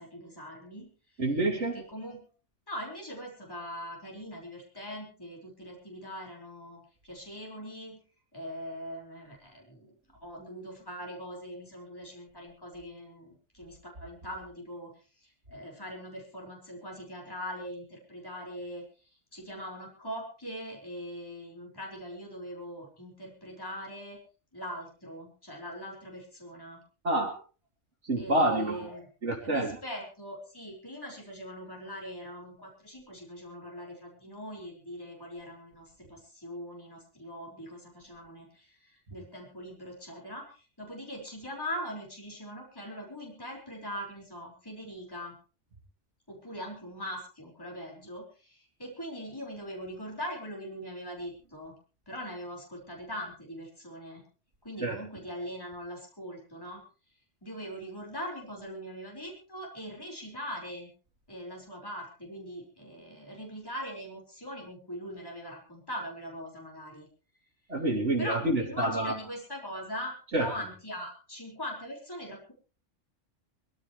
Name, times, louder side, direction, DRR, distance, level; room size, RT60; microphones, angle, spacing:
voice 1, 0.0-1.2 1.6-2.2 2.7-8.0 8.3-14.9 15.2-24.2 24.5-26.8 28.2-29.1 29.4-45.4 46.3-51.7 52.1-54.3 54.6-56.8 57.4-60.9 61.3-67.1 68.2-72.5, equal, 20° left, -1 dB, 5.4 m, -41 dB
voice 2, 1.2-1.8 27.0-27.4 28.0-28.9 29.2-29.7 54.8-55.0 67.7-69.1 70.3-70.5, right 1 dB, 70° right, 0 dB, 3.0 m, -27 dB
23.5 x 15.0 x 3.3 m, 0.36 s
omnidirectional pair, 1.3 m